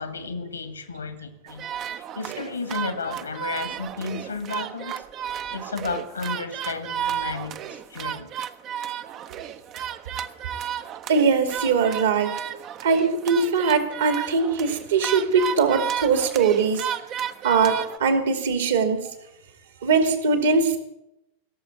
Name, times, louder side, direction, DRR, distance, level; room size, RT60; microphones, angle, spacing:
voice 1, 0.0-8.3 10.1-10.2, left 4 dB, 75° left, 2.2 m, -33 dB
sound 1, 1.5-18.0, right 9 dB, 35° right, 0.8 m, -33 dB
voice 2, 11.1-12.3 12.8-16.8 17.4-19.1 19.8-20.8, right 5 dB, 65° right, 2.4 m, -21 dB
17.5 x 7.2 x 9.2 m
figure-of-eight pair, 90°, 0 cm